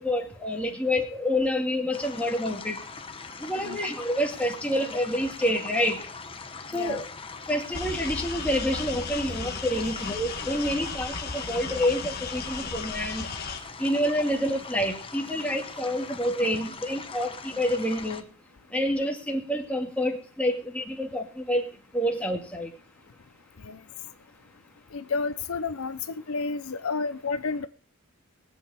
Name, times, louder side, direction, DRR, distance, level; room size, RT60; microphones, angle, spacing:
voice 1, 0.0-2.8 3.4-6.0 6.7-7.0 7.5-13.3 13.8-18.2 18.7-21.7 21.9-22.7, equal, 5° left, 2.1 m, -28 dB
sound 1, 1.9-18.2, left 4 dB, 25° left, 1.0 m, -41 dB
voice 2, 6.7-7.0 23.6-23.8 24.9-27.7, left 4 dB, 75° left, 0.7 m, -31 dB
sound 2, 7.7-13.6, left 4 dB, 45° left, 1.5 m, -35 dB
21.5 x 8.2 x 4.2 m
head